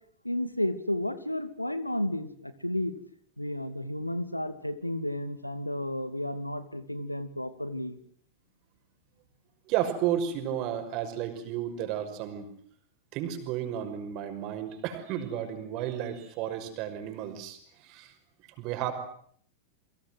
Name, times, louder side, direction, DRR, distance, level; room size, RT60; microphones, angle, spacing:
voice 1, 0.2-2.9 3.4-8.0, left 1 dB, 85° left, 13 dB, 2.3 m, -32 dB
voice 2, 9.7-12.5 13.1-18.1 18.6-18.9, right 10 dB, 40° right, 9 dB, 5.8 m, -32 dB
29.5 x 24.0 x 7.9 m, 0.64 s
figure-of-eight pair, 90°, 0 cm